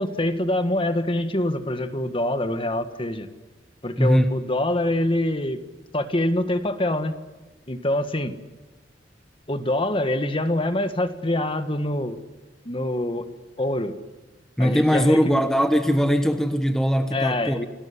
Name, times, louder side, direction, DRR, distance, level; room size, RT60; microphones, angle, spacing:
voice 1, 0.0-3.3 3.8-5.6 5.9-7.1 7.7-8.3 9.5-12.2 12.6-13.3 13.6-14.0 14.6-15.2 17.1-17.7, left 1 dB, 30° left, 10 dB, 1.6 m, -25 dB
voice 2, 4.0-4.3 14.6-17.6, equal, 5° left, 7 dB, 1.1 m, -20 dB
28.5 x 19.0 x 9.8 m, 1.2 s
head